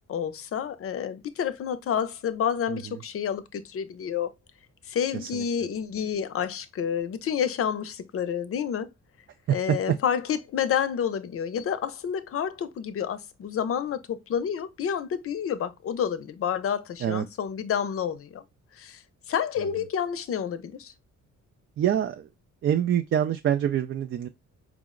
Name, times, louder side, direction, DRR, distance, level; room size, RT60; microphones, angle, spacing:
voice 1, 0.0-4.3 4.9-8.9 9.5-18.4 18.8-19.0 19.3-20.9, left 8 dB, 50° left, 0.6 m, -29 dB
voice 2, 5.1-5.4 9.5-9.8 17.0-17.2 21.8-22.3 22.6-24.3, right 10 dB, 45° right, 0.4 m, -25 dB
4.7 x 2.0 x 3.7 m
cardioid pair, 90°, 30 cm